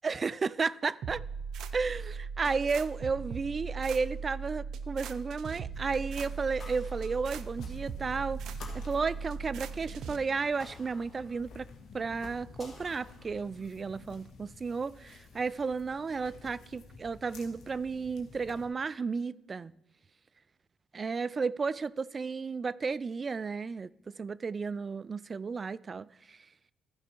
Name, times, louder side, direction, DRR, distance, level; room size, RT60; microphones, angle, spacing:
voice 1, 0.0-1.2 1.7-8.4 8.7-11.7 11.9-19.7 20.9-26.4, right 4 dB, 35° right, 0.3 m, -33 dB
sound 1, 1.0-10.2, right 5 dB, 75° right, 0.6 m, -39 dB
sound 2, 5.7-18.7, left 4 dB, 80° left, 1.8 m, -52 dB
sound 3, 6.6-7.9 8.6-9.8 10.6-11.8 12.6-13.8, left 2 dB, 25° left, 4.4 m, -53 dB
14.0 x 5.5 x 4.4 m
cardioid pair, 90°, 0 cm